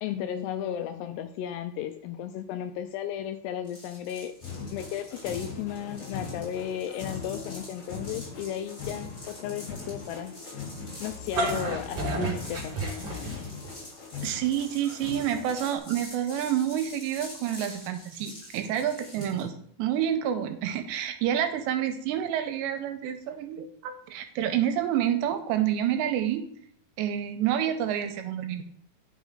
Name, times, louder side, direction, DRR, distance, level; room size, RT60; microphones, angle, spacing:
voice 1, 0.0-4.3 4.7-10.3 11.0-13.5, left 10 dB, 80° left, 8 dB, 2.4 m, -34 dB
sound 1, 3.6-19.5, left 1 dB, 20° left, 3.9 m, -46 dB
sound 2, 4.4-15.8, left 4 dB, 55° left, 4.3 m, -41 dB
sound 3, 11.1-13.7, right 2 dB, 60° right, 1.2 m, -30 dB
voice 2, 14.2-26.4 27.0-28.6, right 10 dB, 85° right, 7 dB, 2.9 m, -28 dB
9.9 x 6.0 x 3.7 m, 0.67 s
omnidirectional pair, 5.1 m